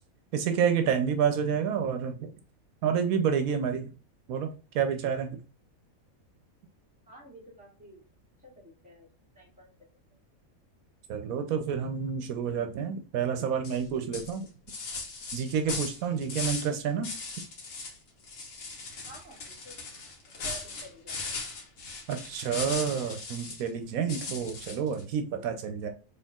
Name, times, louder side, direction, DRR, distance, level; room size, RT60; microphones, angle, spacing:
voice 1, 0.3-2.3 2.8-3.9 4.3-4.5 4.7-5.3 11.1-14.5 15.3-17.1 22.1-25.9, right 7 dB, 90° right, 7 dB, 1.1 m, -29 dB
voice 2, 7.1-8.0 8.4-9.1 9.3-9.7 19.0-19.8 20.3-21.4, right 1 dB, 5° right, -5 dB, 2.0 m, -50 dB
sound 1, 13.6-13.8 14.1-16.7 17.0-18.0 18.2-23.7 24.1-25.0, left 3 dB, 75° left, 1.4 m, -38 dB
4.4 x 3.2 x 2.3 m, 0.34 s
omnidirectional pair, 1.4 m